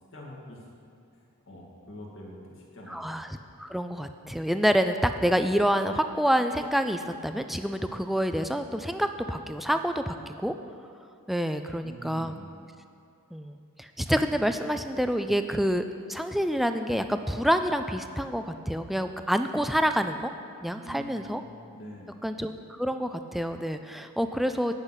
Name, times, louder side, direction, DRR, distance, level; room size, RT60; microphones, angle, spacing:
voice 1, 0.1-0.7 1.1-3.1 11.8-12.5 20.8-21.3 21.7-22.2, equal, 60° left, -3 dB, 2.2 m, -45 dB
voice 2, 2.9-3.3 3.6-10.5 11.3-12.4 13.3-20.3 20.6-21.4 22.2-24.7, equal, ahead, 8 dB, 0.3 m, -27 dB
10.0 x 5.7 x 8.1 m, 2.5 s
head